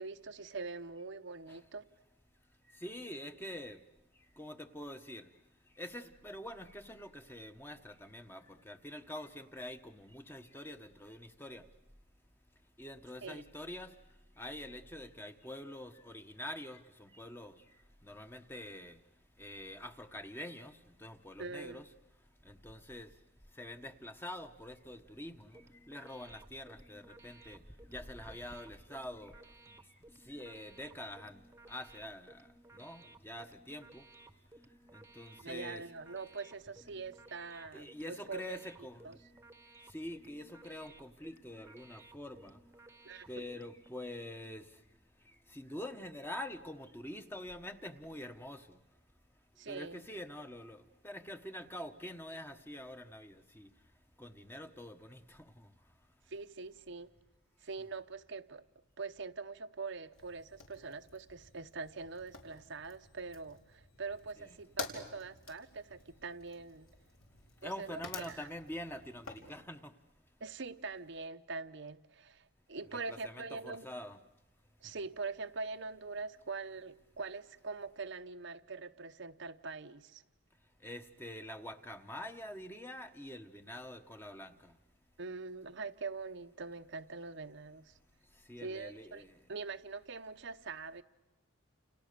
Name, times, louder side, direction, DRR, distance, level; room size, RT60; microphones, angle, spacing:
voice 1, 0.0-1.8 13.2-13.4 21.4-21.8 35.4-38.6 39.0-39.2 43.0-43.5 49.6-50.0 56.3-57.1 57.6-58.6 59.0-66.9 67.6-68.0 68.3-68.5 70.4-73.8 74.8-80.2 85.2-87.9 88.6-89.2 89.5-91.0, right 4 dB, 55° right, 0.9 m, -43 dB
voice 2, 2.7-3.8 4.4-5.3 5.8-11.6 12.8-13.9 14.4-17.6 18.0-19.0 19.4-21.9 22.4-23.1 23.6-27.6 27.9-29.3 30.3-32.5 32.7-34.0 34.9-35.8 37.5-39.1 39.9-42.6 43.3-44.7 45.5-48.8 49.7-53.7 54.2-55.7 64.4-64.6 67.6-69.9 72.9-74.2 80.8-84.7 88.5-89.4, left 1 dB, 10° left, 1.1 m, -46 dB
sound 1, 25.4-43.9, right 2 dB, 15° right, 1.1 m, -59 dB
Fire, 60.1-69.5, left 4 dB, 75° left, 4.6 m, -50 dB
30.0 x 29.0 x 6.8 m
head